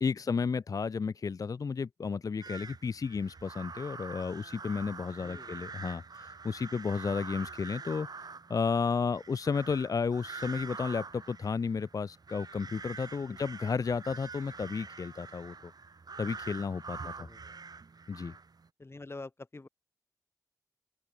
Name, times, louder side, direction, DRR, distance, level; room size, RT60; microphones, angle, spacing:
voice 1, 0.0-15.6 16.2-17.3 18.1-18.3, left 5 dB, 60° left, 0.4 m, -33 dB
sound 1, 2.4-18.7, right 4 dB, 80° right, 4.7 m, -45 dB
voice 2, 5.1-5.6 13.2-13.4 16.9-17.6 18.8-19.7, left 2 dB, 40° left, 3.2 m, -47 dB
open air
wide cardioid pair, 90°, 7 cm